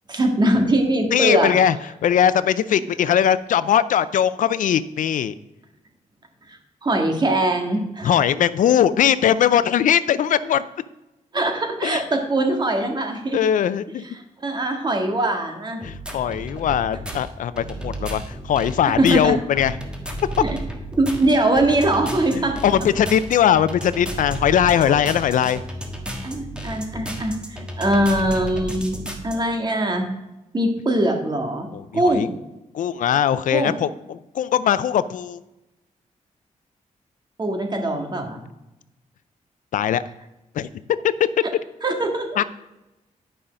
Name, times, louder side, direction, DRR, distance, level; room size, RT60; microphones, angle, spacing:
voice 1, 0.1-1.5 6.5-8.1 11.3-13.4 14.0-15.8 19.0-19.4 20.4-20.6 21.0-22.6 24.7-25.0 26.2-28.9 29.2-30.1 30.5-31.7 31.9-32.3 33.5-33.8 37.4-38.4 41.8-42.4, right 1 dB, 35° right, 3 dB, 1.7 m, -22 dB
voice 2, 1.1-1.8 2.0-5.3 8.0-10.6 11.8-12.0 13.3-14.0 15.8-19.7 22.6-25.6 31.7-32.3 32.7-35.4 39.7-40.0 40.6-40.7 42.4-42.5, left 9 dB, 85° left, 15 dB, 0.4 m, -20 dB
sound 1, 15.8-29.4, equal, 5° right, 1.4 m, -33 dB
11.0 x 5.6 x 5.1 m, 0.95 s
wide cardioid pair, 115°, 13 cm